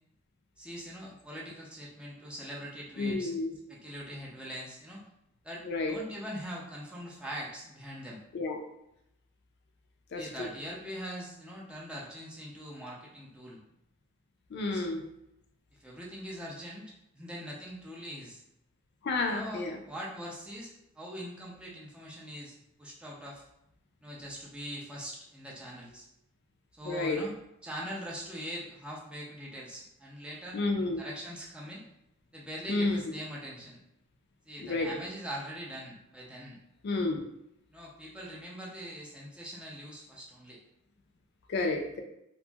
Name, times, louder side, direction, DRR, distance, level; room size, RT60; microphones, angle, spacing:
voice 1, 0.6-3.3 3.7-5.0 5.4-8.2 10.1-13.6 14.7-14.9 15.7-18.4 19.3-23.4 24.0-26.1 26.7-27.3 27.6-31.8 32.3-33.8 34.5-36.6 37.7-40.6, equal, 5° right, -4 dB, 0.5 m, -42 dB
voice 2, 3.0-3.5 5.6-6.0 8.3-8.6 10.1-10.5 14.5-15.0 19.0-19.8 26.9-27.2 30.5-31.0 32.7-33.0 34.6-34.9 36.8-37.2 41.5-42.0, left 3 dB, 55° left, 3 dB, 0.4 m, -30 dB
2.7 x 2.5 x 2.3 m, 0.81 s
head